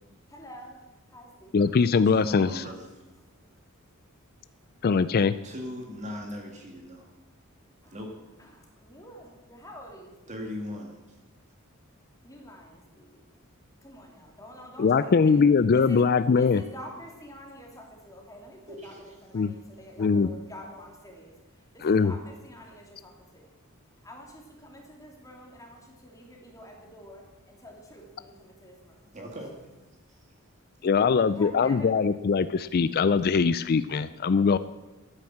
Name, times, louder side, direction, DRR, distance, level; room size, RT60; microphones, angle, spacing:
voice 1, 0.3-0.8 1.1-1.6 7.8-8.0 8.4-10.4 12.2-13.2 13.8-15.4 15.7-16.0 16.3-21.3 21.7-23.5 24.0-29.1 31.2-31.9 32.4-32.5, equal, 15° left, 0 dB, 2.7 m, -47 dB
voice 2, 1.5-2.6 4.8-5.3 14.8-16.6 19.3-19.5 20.0-20.3 21.8-22.1 30.8-34.6, left 5 dB, 45° left, 14 dB, 0.4 m, -22 dB
voice 3, 2.0-3.0 5.4-7.1 7.9-8.1 10.3-11.2 18.7-19.2 29.1-29.6 30.1-30.2, left 1 dB, 35° right, 1 dB, 1.9 m, -38 dB
13.0 x 9.8 x 7.2 m, 1.1 s
head